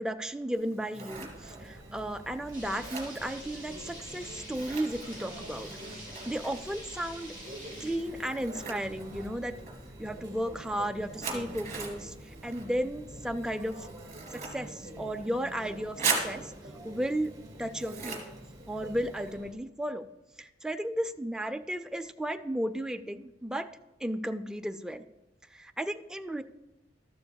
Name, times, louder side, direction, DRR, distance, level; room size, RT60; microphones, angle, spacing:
voice 1, 0.0-5.7 6.3-7.3 7.8-9.6 10.0-12.1 12.4-13.8 14.3-16.5 16.8-17.3 17.6-18.2 18.7-20.1 20.4-23.7 24.0-25.0 25.5-26.4, right 1 dB, 5° right, 7 dB, 0.4 m, -34 dB
Scissors, 0.5-19.3, right 5 dB, 40° right, 2.5 m, -41 dB
Conversation / Chatter / Crowd, 1.1-19.5, right 1 dB, 20° right, 2.3 m, -46 dB
sound 1, 2.5-8.0, equal, 25° left, 4.1 m, -47 dB
13.5 x 11.5 x 2.3 m, 1.0 s
head